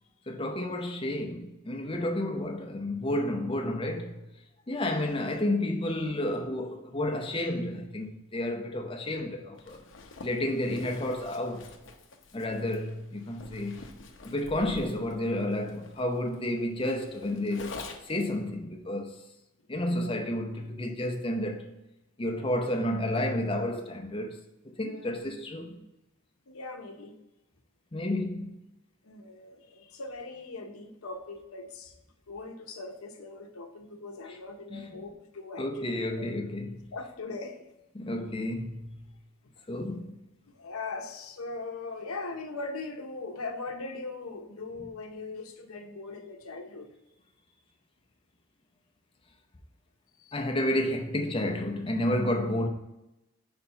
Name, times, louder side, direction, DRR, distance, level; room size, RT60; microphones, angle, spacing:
voice 1, 0.3-4.2 4.7-9.8 10.2-11.7 12.3-13.8 14.2-19.2 19.7-21.7 22.2-24.4 24.8-25.7 27.9-28.5 34.7-35.0 35.6-36.9 37.9-38.9 39.7-40.2 50.3-52.7, left 1 dB, 25° left, 0.6 m, -31 dB
Zipper (clothing), 9.6-18.3, left 3 dB, 65° left, 0.7 m, -47 dB
voice 2, 19.9-20.2 24.8-25.4 25.7-25.8 26.5-27.1 29.0-31.9 32.3-36.3 36.9-37.6 40.5-46.9 50.2-50.4, left 3 dB, 90° left, 0.8 m, -40 dB
4.4 x 4.3 x 5.5 m
head